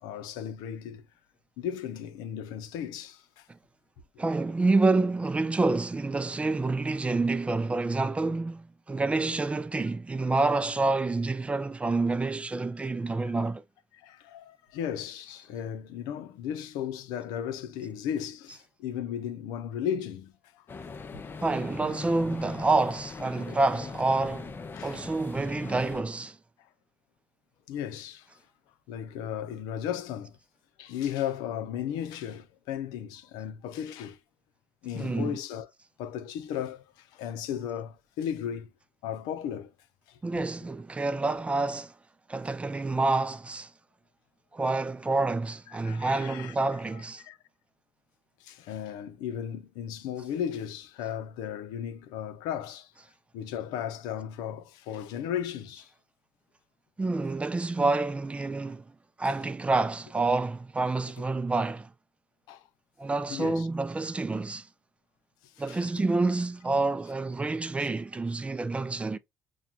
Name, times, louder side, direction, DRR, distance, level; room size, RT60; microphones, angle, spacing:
voice 1, 0.0-1.0 1.6-3.5 14.0-20.6 23.5-23.6 24.8-24.9 27.7-28.3 28.9-30.4 30.8-34.2 34.8-35.7 36.0-38.7 39.0-39.7 40.1-40.2 45.8-46.5 46.9-47.4 48.4-52.9 53.3-55.9 62.5-62.6 63.3-63.7 65.6-65.9 67.8-67.9, left 9 dB, 85° left, 0.6 m, -35 dB
voice 2, 4.2-13.6 21.4-24.5 24.8-26.4 34.9-35.4 40.2-41.9 42.3-43.7 44.5-47.2 57.0-58.8 59.2-61.9 63.0-64.7 65.6-69.2, right 3 dB, 15° right, 0.4 m, -28 dB
sound 1, 20.7-26.0, left 4 dB, 30° left, 0.5 m, -41 dB
5.8 x 2.3 x 2.3 m
supercardioid pair, 90°, 7 cm